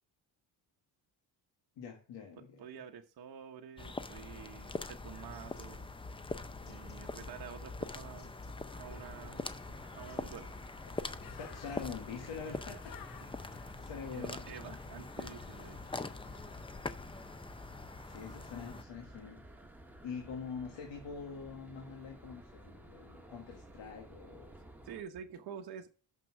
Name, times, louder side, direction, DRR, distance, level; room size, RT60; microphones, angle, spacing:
voice 1, 1.8-2.7 11.4-12.9 13.5-14.8 18.1-19.4 20.0-24.6, left 6 dB, 85° left, 1.7 m, -45 dB
voice 2, 2.4-5.9 6.7-8.4 8.8-9.6 10.0-10.5 14.1-15.9 18.2-18.5 24.8-25.9, right 8 dB, 60° right, 1.0 m, -48 dB
sound 1, 3.8-18.8, left 3 dB, 15° left, 0.5 m, -43 dB
Bird, 5.5-16.5, left 9 dB, 55° left, 0.8 m, -58 dB
sound 2, 8.7-25.0, right 1 dB, 5° right, 1.6 m, -55 dB
6.8 x 6.0 x 6.1 m
cardioid pair, 110°, 43 cm